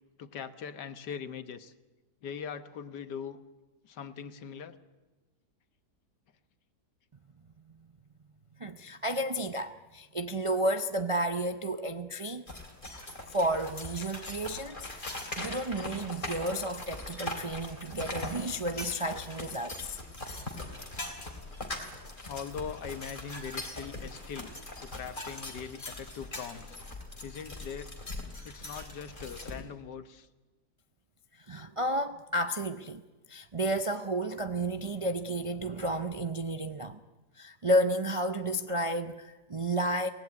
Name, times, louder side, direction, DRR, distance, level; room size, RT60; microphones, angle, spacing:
voice 1, 0.2-1.7 2.2-3.4 3.8-4.8 22.2-24.5 24.8-26.8 27.2-27.9 28.4-30.3, left 7 dB, 85° left, 1.8 m, -41 dB
voice 2, 8.6-12.4 13.3-14.9 15.4-20.0 31.4-33.0 33.3-37.0 37.4-40.1, right 1 dB, 45° right, 0.4 m, -32 dB
sound 1, 12.5-29.6, left 2 dB, 30° left, 3.3 m, -41 dB
23.5 x 18.0 x 9.5 m
omnidirectional pair, 1.8 m